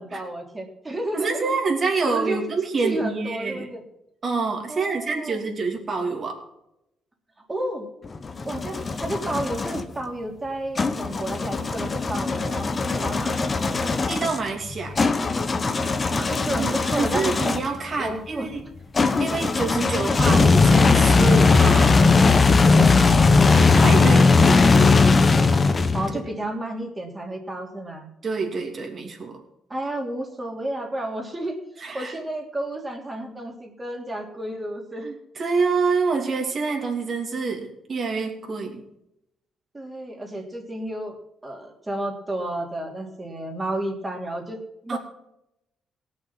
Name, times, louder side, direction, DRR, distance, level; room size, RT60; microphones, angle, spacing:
voice 1, 0.0-1.5 2.0-2.4 2.8-3.8 4.7-5.5 7.5-7.9 8.4-14.0 15.9-17.3 18.0-18.5 25.9-28.1 29.7-35.1 39.7-45.0, right 1 dB, 20° right, 2 dB, 3.0 m, -32 dB
voice 2, 1.1-3.7 4.2-6.4 14.1-15.0 16.6-18.6 19.2-22.2 22.5-23.0 23.7-24.4 28.2-29.4 31.8-32.1 35.0-38.8 44.9-45.0, right 4 dB, 45° right, 2 dB, 2.9 m, -27 dB
sound 1, 8.0-9.8 10.8-17.8 18.9-26.2, left 4 dB, 35° left, 1.1 m, -19 dB
18.0 x 6.5 x 6.0 m, 0.83 s
cardioid pair, 90°, 0 cm